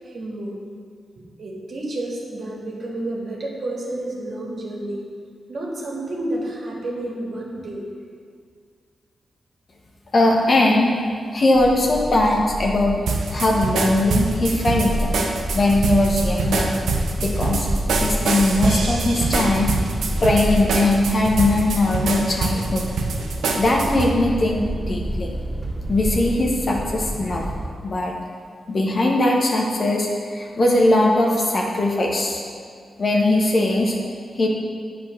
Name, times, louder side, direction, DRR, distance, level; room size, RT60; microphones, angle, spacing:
voice 1, 0.0-0.6 1.1-5.1 5.5-7.8, right 1 dB, 65° right, -3 dB, 1.8 m, -30 dB
voice 2, 10.1-11.0 11.3-13.0 13.3-15.1 15.5-16.6 17.2-17.7 18.0-19.7 20.2-22.8 23.6-25.3 25.9-27.4 27.8-28.1 28.7-32.4 33.0-33.9 34.3-34.5, left 1 dB, 55° left, -1 dB, 1.4 m, -20 dB
sound 1, 11.5-27.7, equal, 10° right, 2.1 m, -29 dB
sound 2, 13.1-24.1, right 3 dB, 85° right, 0.7 m, -25 dB
8.9 x 4.2 x 5.8 m, 2.1 s
supercardioid pair, 50°, 0 cm